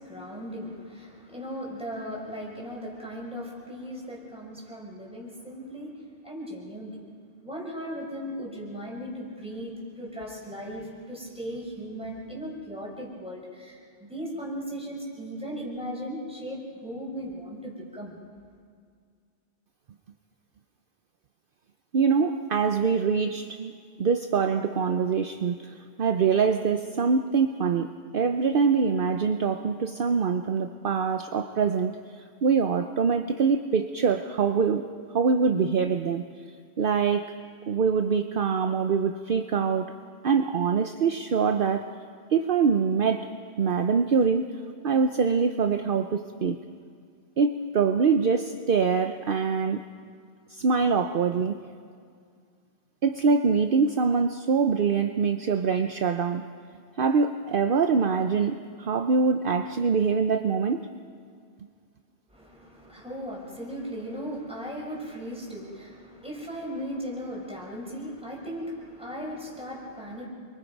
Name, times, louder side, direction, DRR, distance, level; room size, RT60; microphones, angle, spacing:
voice 1, 0.0-7.0 7.4-18.2 62.3-70.3, equal, 5° right, -4 dB, 5.4 m, -37 dB
voice 2, 21.9-23.7 24.0-34.8 35.1-36.2 36.8-37.3 37.7-39.9 40.2-41.9 42.3-43.3 43.6-44.5 44.8-46.6 47.4-49.8 50.5-51.6 53.0-56.5 57.0-60.9, right 5 dB, 55° right, 7 dB, 0.9 m, -24 dB
29.0 x 23.0 x 5.3 m, 2.2 s
omnidirectional pair, 1.1 m